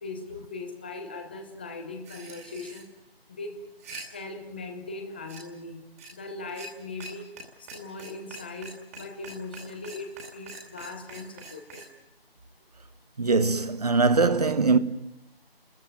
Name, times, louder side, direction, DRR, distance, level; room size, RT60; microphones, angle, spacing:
voice 1, 0.0-2.9 3.3-3.6 4.1-7.3 7.6-11.8, left 3 dB, 10° left, 1.0 m, -39 dB
sound 1, 2.0-2.8 3.6-4.0 5.3-5.4 6.0-6.1 6.5-6.7 7.0-7.1 7.4-7.5 7.7-11.9, right 2 dB, 15° right, 2.6 m, -43 dB
voice 2, 13.2-14.8, right 4 dB, 40° right, 1.2 m, -22 dB
29.0 x 14.0 x 9.0 m
figure-of-eight pair, 160°, 30 cm